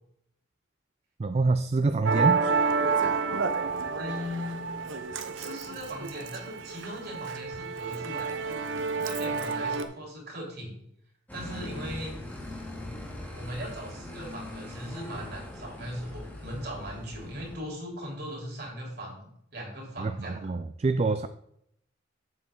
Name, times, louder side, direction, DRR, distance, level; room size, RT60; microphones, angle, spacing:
voice 1, 1.2-2.4 20.0-21.3, right 3 dB, 35° right, 10 dB, 0.4 m, -26 dB
Musical instrument, 2.0-9.8, right 5 dB, 75° right, 0.8 m, -29 dB
voice 2, 4.0-4.6 5.3-8.7 9.0-10.8 11.3-12.2 13.3-20.5, equal, 55° right, -1 dB, 3.5 m, -39 dB
sound 1, 11.3-17.6, left 1 dB, 10° left, 1.8 m, -41 dB
7.7 x 7.5 x 3.8 m, 0.71 s
head